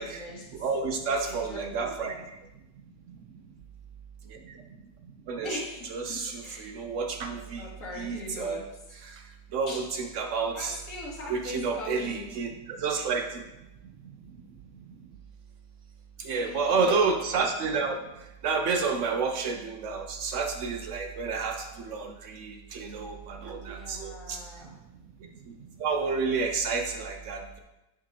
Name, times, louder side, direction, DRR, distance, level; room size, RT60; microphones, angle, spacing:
voice 1, 0.0-0.7 1.2-2.2 5.4-6.7 7.6-8.6 9.7-9.8 10.5-12.4 16.4-17.0 23.5-24.7, left 2 dB, 50° left, -5 dB, 2.0 m, -41 dB
voice 2, 0.5-2.1 5.3-5.5 5.9-7.6 8.0-8.6 9.5-10.8 11.3-13.4 16.2-18.0 18.4-24.4 25.8-27.6, right 4 dB, 70° right, 4 dB, 0.7 m, -30 dB
8.3 x 5.2 x 2.7 m, 0.95 s
omnidirectional pair, 1.8 m